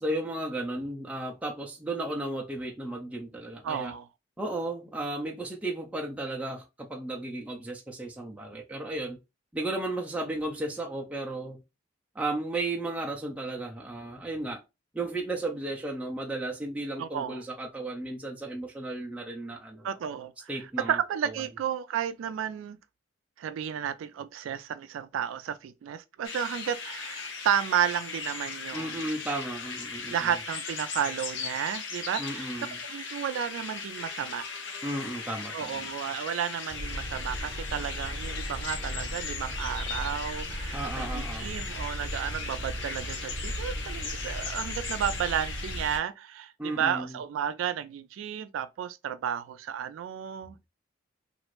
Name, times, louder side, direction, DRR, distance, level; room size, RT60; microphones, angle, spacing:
voice 1, 0.0-3.9 4.4-9.2 9.5-11.6 12.1-14.6 14.9-19.9 20.5-21.0 21.2-21.4 28.7-30.3 32.2-32.8 34.8-35.9 40.7-41.5 46.6-47.2, right 2 dB, 5° right, 0.4 m, -34 dB
voice 2, 3.6-4.1 17.0-17.4 19.8-20.5 20.9-22.8 23.4-29.1 30.1-32.5 32.8-34.5 35.5-50.6, right 9 dB, 90° right, 0.3 m, -32 dB
sound 1, 26.2-46.0, left 5 dB, 75° left, 0.7 m, -38 dB
sound 2, 36.7-46.0, right 1 dB, 45° right, 0.8 m, -37 dB
3.0 x 2.5 x 3.1 m
head